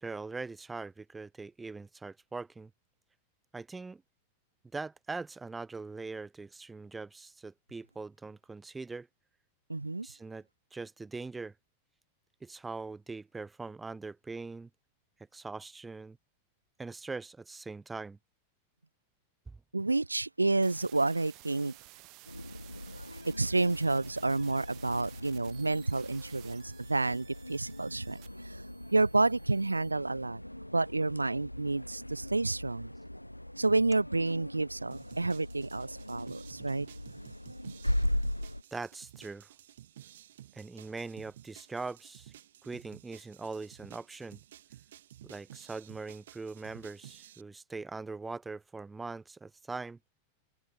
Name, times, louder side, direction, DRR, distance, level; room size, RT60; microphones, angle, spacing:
voice 1, 0.0-2.7 3.5-4.0 4.7-9.1 10.0-11.5 12.4-14.7 15.3-16.2 16.8-18.2 19.5-19.6 38.7-39.5 40.5-42.3 42.6-44.4 45.2-50.0, right 3 dB, 10° right, 1.3 m, -42 dB
voice 2, 9.7-10.1 19.7-21.7 23.4-28.6 28.9-30.4 30.7-32.9 33.6-36.9, right 2 dB, 80° right, 0.4 m, -30 dB
sound 1, 20.6-29.9, right 26 dB, 40° right, 7.3 m, -55 dB
sound 2, 22.3-38.6, left 1 dB, 90° left, 0.3 m, -39 dB
sound 3, 34.9-47.4, right 12 dB, 60° right, 1.4 m, -54 dB
figure-of-eight pair, 90°, 0 cm